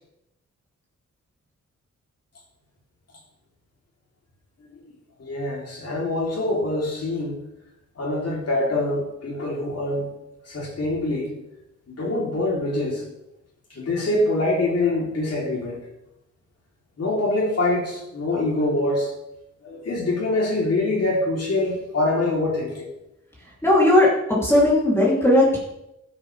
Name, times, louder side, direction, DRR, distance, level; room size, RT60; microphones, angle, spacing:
voice 1, 5.2-7.4 8.0-10.0 10.5-11.3 11.9-13.0 13.7-15.8 17.0-19.1 19.6-22.9, left 2 dB, 55° left, -2 dB, 3.3 m, -24 dB
voice 2, 23.6-25.6, left 1 dB, 10° left, -5 dB, 3.0 m, -17 dB
15.0 x 7.5 x 3.4 m, 0.85 s
wide cardioid pair, 120°, 30 cm